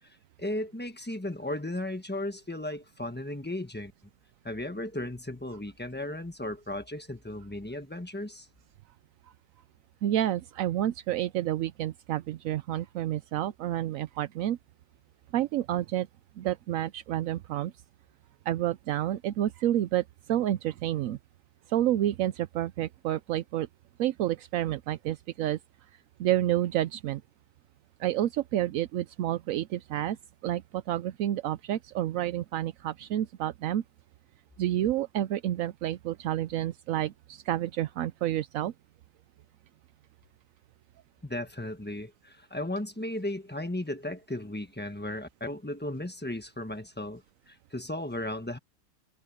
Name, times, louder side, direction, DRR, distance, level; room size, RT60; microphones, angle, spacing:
voice 1, 0.4-3.9 4.4-8.5 41.2-48.6, left 1 dB, 5° left, 1.1 m, -35 dB
voice 2, 10.0-14.6 15.3-16.1 16.4-17.7 18.5-21.2 21.7-23.7 24.0-25.6 26.2-27.2 28.0-30.2 30.4-33.8 34.6-38.7, right 13 dB, 75° right, 0.8 m, -29 dB
omnidirectional pair, 1.9 m